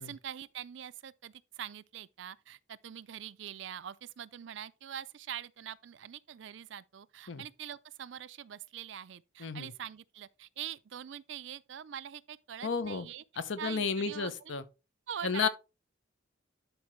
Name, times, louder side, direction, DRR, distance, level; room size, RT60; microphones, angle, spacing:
voice 1, 0.0-13.2 13.6-14.3 15.1-15.5, right 9 dB, 70° right, 0.4 m, -44 dB
voice 2, 9.4-9.7 12.6-13.1 13.4-14.6 15.2-15.5, left 5 dB, 75° left, 0.8 m, -32 dB
11.5 x 4.6 x 3.2 m
head